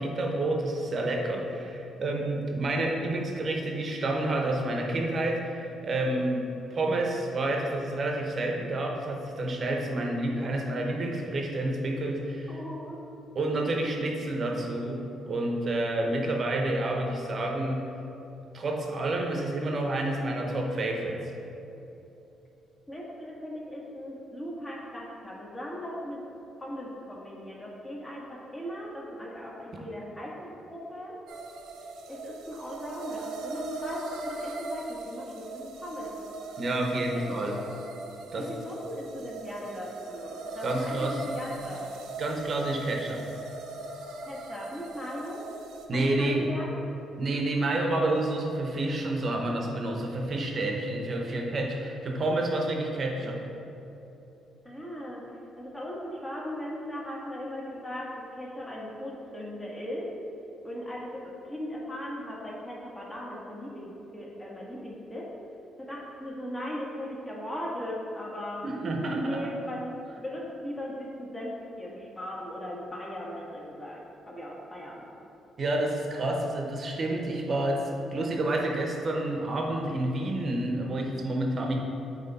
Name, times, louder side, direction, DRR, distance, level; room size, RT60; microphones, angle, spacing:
voice 1, 0.0-12.6 13.3-17.8 18.5-21.2 36.6-37.6 38.3-38.5 40.6-41.2 42.2-43.3 45.9-46.5 47.2-53.4 68.6-69.4 75.6-81.8, right 2 dB, 45° right, 1 dB, 0.9 m, -29 dB
voice 2, 12.5-13.0 22.9-26.2 26.6-31.1 32.1-36.1 37.1-37.6 38.3-41.9 44.3-45.4 45.9-46.7 53.2-53.3 54.6-55.2 55.6-60.1 60.6-65.3 65.8-68.6 69.2-75.1, equal, 15° left, -4 dB, 1.4 m, -38 dB
sound 1, 31.3-45.9, right 2 dB, 90° right, 0.6 m, -40 dB
8.8 x 3.0 x 4.1 m, 3.0 s
cardioid pair, 90°, 0 cm